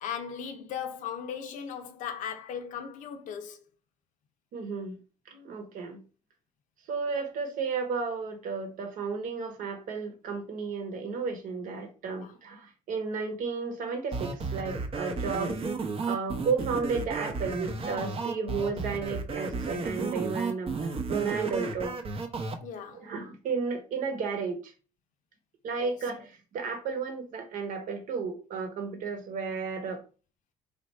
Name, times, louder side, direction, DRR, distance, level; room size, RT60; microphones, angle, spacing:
voice 1, 0.0-3.6 12.2-12.3 22.6-23.1 25.8-25.9, left 8 dB, 70° left, 0.6 m, -37 dB
voice 2, 4.5-5.0 5.3-6.0 6.9-15.6 16.0-22.0 22.9-24.7 25.6-30.0, right 5 dB, 70° right, 1.1 m, -33 dB
sound 1, 14.1-22.5, right 4 dB, 40° right, 0.7 m, -33 dB
3.2 x 2.5 x 4.2 m
cardioid pair, 95°, 14 cm